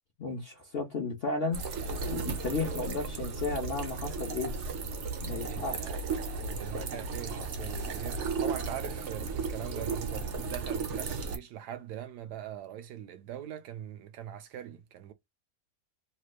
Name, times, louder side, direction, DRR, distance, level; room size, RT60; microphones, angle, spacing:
voice 1, 0.2-1.6 2.1-4.6 5.2-6.0, left 3 dB, 50° left, 0.8 m, -34 dB
sound 1, 1.5-11.4, right 4 dB, 55° right, 0.9 m, -35 dB
voice 2, 5.4-6.0 6.5-15.1, right 11 dB, 80° right, 1.1 m, -42 dB
3.2 x 3.0 x 2.3 m
omnidirectional pair, 1.7 m